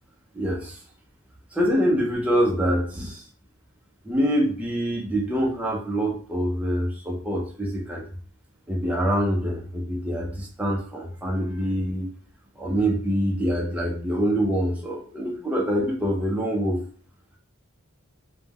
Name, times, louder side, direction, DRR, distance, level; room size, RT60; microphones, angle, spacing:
voice 1, 0.3-0.8 1.5-3.2 4.0-8.1 8.7-12.1 12.6-16.8, equal, 5° right, -3 dB, 0.3 m, -25 dB
2.1 x 2.1 x 3.3 m, 0.43 s
head